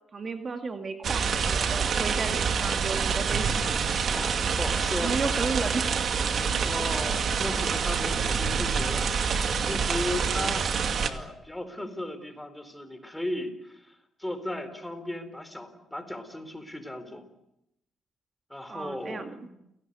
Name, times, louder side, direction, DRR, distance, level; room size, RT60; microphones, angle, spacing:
voice 1, 0.1-3.5 5.0-5.8 6.3-6.7 18.7-19.5, right 4 dB, 40° right, 6 dB, 2.2 m, -33 dB
sound 1, 1.0-11.1, right 6 dB, 55° right, 2.4 m, -27 dB
voice 2, 4.2-5.5 6.6-17.2 18.5-19.5, left 1 dB, 5° left, 9 dB, 4.3 m, -36 dB
29.0 x 18.0 x 8.3 m, 0.85 s
cardioid pair, 90°, 0 cm